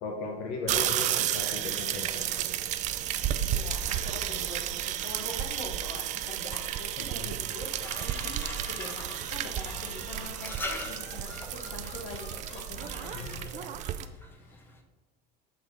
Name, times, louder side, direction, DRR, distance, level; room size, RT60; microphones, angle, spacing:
voice 1, 0.0-2.5 7.0-7.3 13.1-13.5, left 3 dB, 60° left, -1 dB, 1.1 m, -37 dB
sound 1, 0.7-14.0, right 11 dB, 35° right, 0.4 m, -32 dB
voice 2, 3.5-13.8 14.3-14.7, left 2 dB, 80° left, 2 dB, 1.6 m, -44 dB
sound 2, 7.5-10.3 10.7-13.4, left 4 dB, 30° left, 1.0 m, -49 dB
sound 3, 7.8-14.8, left 2 dB, 10° left, 0.6 m, -43 dB
6.5 x 4.3 x 5.2 m, 1.3 s
cardioid pair, 150°, 21 cm